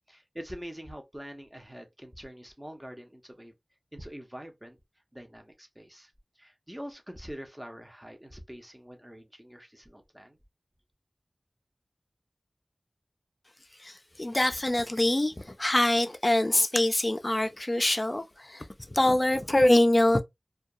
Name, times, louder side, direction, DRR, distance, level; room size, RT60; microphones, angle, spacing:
voice 1, 0.1-3.5 3.9-4.8 5.1-10.4, equal, 15° right, 0.7 m, -45 dB
voice 2, 13.8-20.2, left 1 dB, 35° left, 0.4 m, -24 dB
2.3 x 2.2 x 2.6 m
wide cardioid pair, 50°, 0 cm